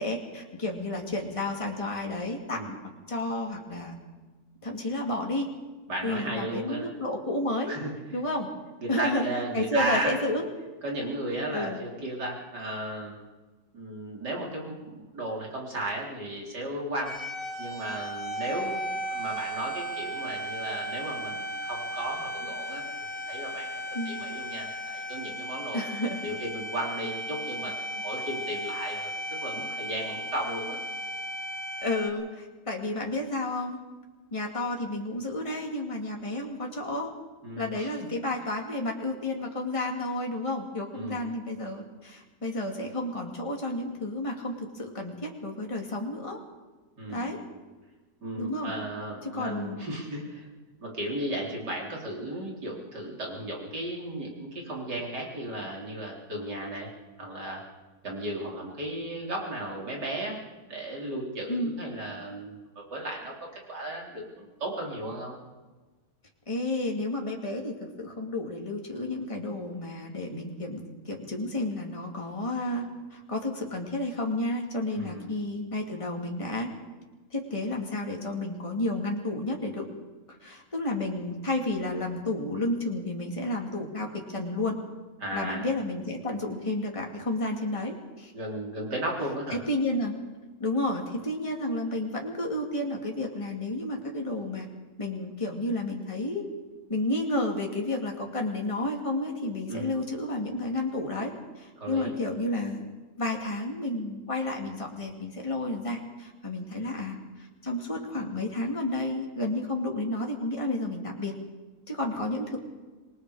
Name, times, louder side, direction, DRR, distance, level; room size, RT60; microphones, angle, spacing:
voice 1, 0.0-2.8 3.1-4.0 4.6-5.5 6.0-7.7 8.1-8.5 8.9-10.5 11.5-11.8 23.9-24.1 25.7-26.2 31.8-33.8 34.3-37.1 37.6-46.4 47.1-47.4 48.4-48.7 49.2-49.8 61.5-61.7 66.5-76.7 77.3-79.9 80.4-84.8 85.3-88.3 89.5-90.1 90.6-94.7 95.0-96.4 96.9-102.8 103.2-107.2 107.6-111.3 111.9-112.6, left 1 dB, 20° left, 1 dB, 2.5 m, -31 dB
voice 2, 5.9-6.9 7.7-7.9 8.8-10.2 10.8-13.1 13.7-17.2 17.6-25.9 26.2-30.8 37.4-38.1 40.9-41.3 47.0-47.3 48.2-50.5 50.8-56.9 57.2-57.6 58.0-60.4 60.7-63.3 63.7-65.3 74.9-75.3 85.2-85.6 88.3-89.6 99.7-99.9 101.8-102.1, right 1 dB, 80° right, -2 dB, 4.8 m, -35 dB
sound 1, 17.0-32.1, equal, 35° left, 3.4 m, -35 dB
26.5 x 20.5 x 5.0 m, 1.2 s
omnidirectional pair, 1.8 m